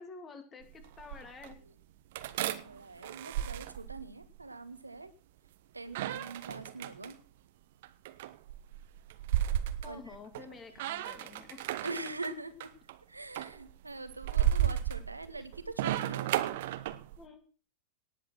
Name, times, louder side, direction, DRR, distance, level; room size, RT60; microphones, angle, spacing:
voice 1, 0.0-1.6 9.8-12.0 17.2-17.4, left 4 dB, 25° left, 8 dB, 3.1 m, -49 dB
sound 1, 0.6-1.6 2.2-4.4 5.9-7.1 7.8-10.5 10.8-12.3 12.6-13.0 13.4-17.2, right 12 dB, 55° right, 1.1 m, -34 dB
voice 2, 2.3-5.1 5.7-7.2 9.8-10.2 10.7-10.8 11.8-12.7 13.1-16.5, right 2 dB, 80° right, 11 dB, 1.7 m, -43 dB
18.5 x 8.5 x 6.0 m, 0.37 s
figure-of-eight pair, 90°, 0 cm